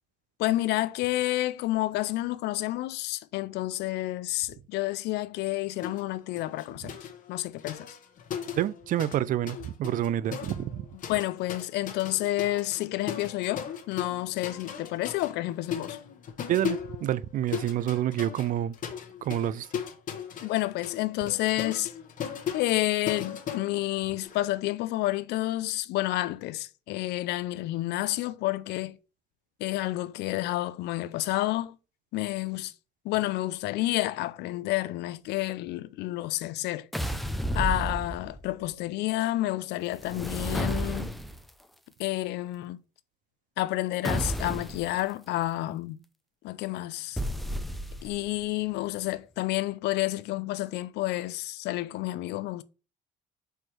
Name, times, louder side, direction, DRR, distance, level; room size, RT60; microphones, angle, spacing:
voice 1, 0.4-6.9 7.3-8.0 11.1-16.0 20.4-21.9 22.5-29.0 29.6-31.8 32.1-32.7 33.0-36.9 37.5-41.1 42.0-42.8 43.6-46.0 46.4-47.2 48.0-52.6, left 17 dB, 80° left, 0.5 m, -30 dB
sound 1, 5.8-6.1 6.4-9.2 9.5-24.4, left 8 dB, 50° left, 1.1 m, -38 dB
voice 2, 8.5-10.9 16.5-18.8 19.2-19.7, right 12 dB, 50° right, 0.4 m, -28 dB
sound 2, 36.9-38.5 40.0-41.5 44.0-44.9 47.2-48.3, equal, ahead, 0.5 m, -31 dB
4.5 x 4.4 x 4.7 m
cardioid pair, 110°, 17 cm